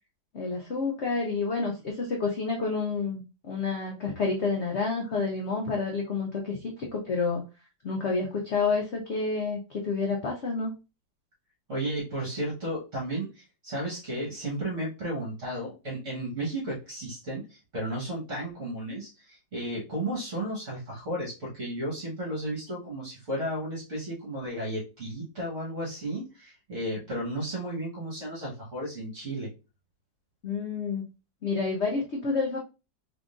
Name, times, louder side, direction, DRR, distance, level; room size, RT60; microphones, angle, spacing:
voice 1, 0.3-7.4 7.8-10.7 30.4-31.1 31.4-32.6, left 4 dB, 75° left, 0 dB, 0.6 m, -29 dB
voice 2, 11.7-29.5, right 1 dB, 45° right, -5 dB, 1.5 m, -33 dB
3.7 x 3.5 x 2.4 m, 0.29 s
omnidirectional pair, 2.0 m